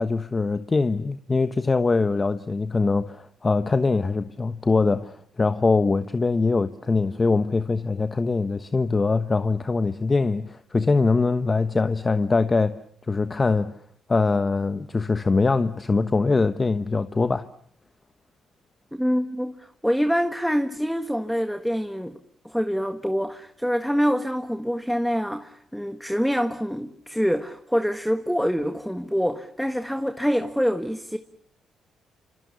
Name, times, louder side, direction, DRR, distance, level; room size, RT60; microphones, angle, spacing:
voice 1, 0.0-12.7 13.1-13.7 14.1-17.5, left 3 dB, 25° left, 1.2 m, -23 dB
voice 2, 18.9-22.2 22.4-31.2, equal, ahead, 1.6 m, -25 dB
28.5 x 27.0 x 7.0 m
cardioid pair, 90°, 0 cm